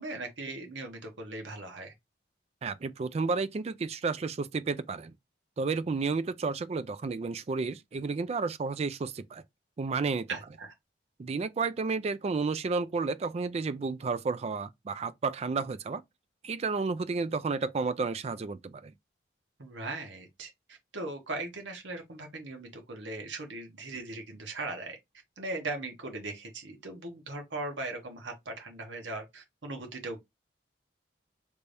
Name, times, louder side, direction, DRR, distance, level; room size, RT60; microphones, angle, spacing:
voice 1, 0.0-1.9 10.3-10.7 19.6-25.0 25.4-30.2, right 2 dB, 80° right, 1.2 m, -39 dB
voice 2, 2.6-5.1 5.6-9.4 9.8-10.3 11.2-16.0 16.4-18.9, right 4 dB, 35° right, 0.3 m, -31 dB
3.3 x 2.6 x 3.3 m
head